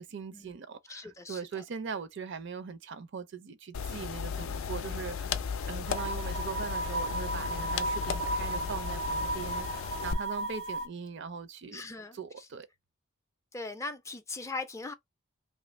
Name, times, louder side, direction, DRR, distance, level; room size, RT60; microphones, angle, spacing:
voice 1, 0.0-5.4 5.7-11.8 12.1-12.7, right 6 dB, 60° right, 0.5 m, -40 dB
voice 2, 0.9-1.6 11.7-12.5 13.5-14.9, left 3 dB, 15° left, 0.4 m, -40 dB
sound 1, 3.7-10.1, left 6 dB, 85° left, 0.4 m, -35 dB
sound 2, 5.9-10.9, right 2 dB, 80° right, 0.8 m, -35 dB
2.7 x 2.4 x 3.1 m
head